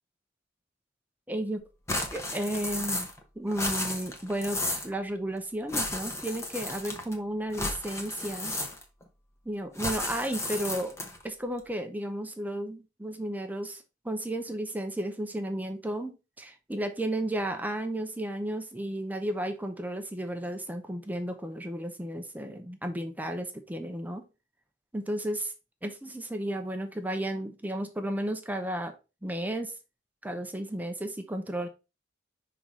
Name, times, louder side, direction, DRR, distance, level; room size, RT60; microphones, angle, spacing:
voice 1, 1.3-1.6 2.1-3.1 3.4-8.5 9.5-11.0 11.2-24.3 24.9-25.5 25.8-28.9 29.2-29.7 30.2-31.7, right 1 dB, 10° right, 6 dB, 0.7 m, -33 dB
sound 1, 1.9-3.2 3.5-4.9 5.7-7.1 7.5-9.0 9.8-11.2, left 1 dB, 15° left, 1.0 m, -33 dB
5.8 x 3.8 x 4.5 m, 0.29 s
head